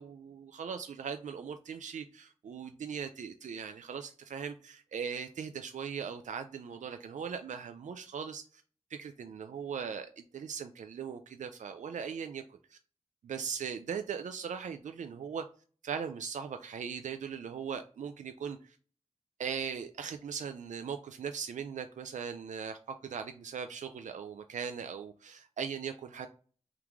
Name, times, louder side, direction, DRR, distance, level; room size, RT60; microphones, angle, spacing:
voice 1, 0.0-8.6 9.0-12.8 13.2-15.4 15.8-18.8 19.4-26.3, right 7 dB, 85° right, 7 dB, 0.4 m, -39 dB
3.6 x 3.0 x 3.5 m, 0.40 s
wide cardioid pair, 80°, 12 cm